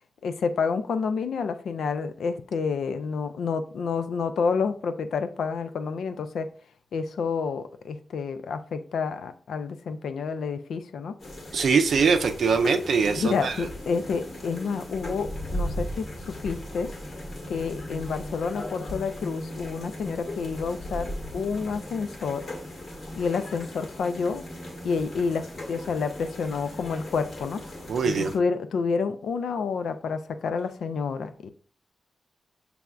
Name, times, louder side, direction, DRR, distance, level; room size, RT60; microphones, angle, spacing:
voice 1, 0.2-6.5 6.9-11.2 13.2-16.9 17.5-22.5 23.2-24.4 24.8-27.6 28.0-31.5, left 5 dB, 85° left, 0.4 m, -29 dB
sound 1, 11.2-28.4, equal, 70° left, 1.5 m, -37 dB
voice 2, 11.5-13.5 27.9-28.3, right 5 dB, 80° right, 0.4 m, -22 dB
6.0 x 3.4 x 2.3 m
cardioid pair, 50°, 0 cm